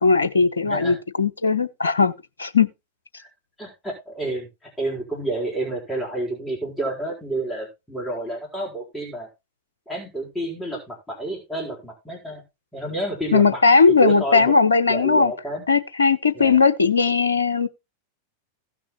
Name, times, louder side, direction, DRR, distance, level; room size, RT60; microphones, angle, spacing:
voice 1, 0.0-2.1 2.4-2.7 13.3-15.3 15.7-17.7, left 4 dB, 75° left, 0.9 m, -18 dB
voice 2, 0.6-1.0 3.2-3.3 3.6-9.3 9.9-12.4 12.7-13.6 13.9-14.5 14.9-15.7 16.3-16.5, right 1 dB, 5° left, 4.3 m, -30 dB
16.5 x 6.2 x 3.0 m
figure-of-eight pair, 90°, 0 cm